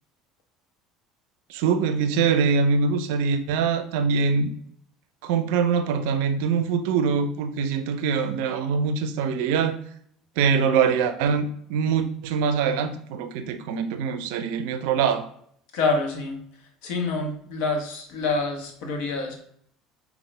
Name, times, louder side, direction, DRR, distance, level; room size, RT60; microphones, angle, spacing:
voice 1, 1.5-4.5 5.2-9.8 10.4-15.3, right 6 dB, 65° right, 10 dB, 0.4 m, -23 dB
voice 2, 15.7-16.4 16.8-19.4, left 3 dB, 65° left, 2 dB, 1.1 m, -26 dB
5.4 x 2.4 x 3.3 m, 0.64 s
hypercardioid pair, 70°, 0 cm